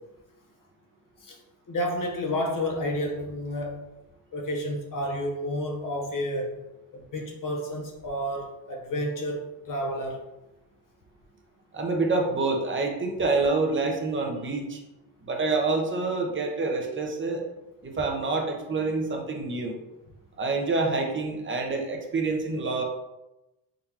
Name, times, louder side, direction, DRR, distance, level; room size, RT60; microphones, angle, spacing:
voice 1, 1.7-3.9 4.3-6.6 6.9-10.2, equal, 45° left, 0 dB, 0.8 m, -30 dB
voice 2, 11.7-14.8 15.2-17.4 17.8-19.8 20.4-22.8, right 3 dB, 25° right, 2 dB, 0.8 m, -27 dB
3.8 x 3.4 x 2.9 m, 0.96 s
cardioid pair, 85°, 47 cm